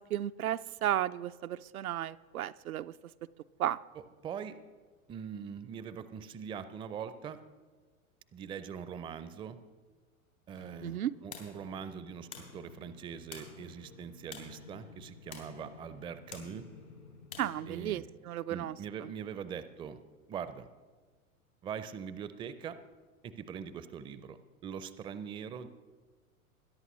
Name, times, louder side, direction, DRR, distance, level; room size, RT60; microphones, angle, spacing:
voice 1, 0.1-2.9 3.6-3.8 10.8-11.1 17.4-18.8, right 12 dB, 80° right, 0.5 m, -34 dB
voice 2, 3.9-4.6 5.1-7.4 8.3-9.6 10.5-16.7 17.6-18.1 18.5-20.0 20.3-20.7 21.6-22.8 23.2-24.4 24.6-25.7, right 7 dB, 15° right, 0.4 m, -42 dB
sound 1, 10.5-17.9, left 5 dB, 90° left, 3.3 m, -50 dB
21.5 x 11.0 x 3.1 m
hypercardioid pair, 95°, 42 cm